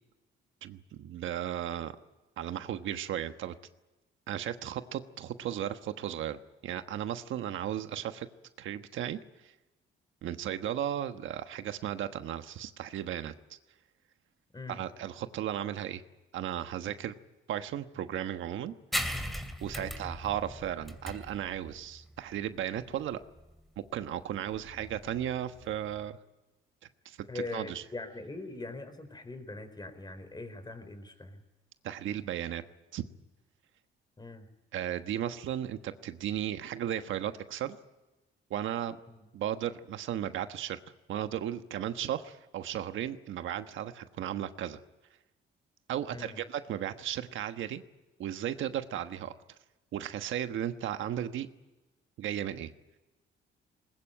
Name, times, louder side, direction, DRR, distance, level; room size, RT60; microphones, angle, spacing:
voice 1, 0.6-1.9 2.4-3.5 4.3-8.3 8.6-9.5 10.2-13.6 14.7-16.0 16.3-17.1 17.5-18.7 19.6-23.2 23.9-26.2 27.0-27.2 27.5-27.8 31.8-32.6 32.9-33.0 34.7-37.8 38.5-39.0 39.3-40.8 41.1-44.8 45.9-47.8 48.2-49.3 49.9-51.5 52.2-52.7, right 10 dB, 75° right, 9 dB, 1.3 m, -35 dB
sound 1, 18.9-26.0, equal, ahead, 3.0 m, -39 dB
voice 2, 27.3-31.4 34.2-34.4 39.1-39.2 46.1-46.4, left 3 dB, 20° left, 9 dB, 4.4 m, -42 dB
21.0 x 20.0 x 9.0 m, 1.1 s
cardioid pair, 90°, 20 cm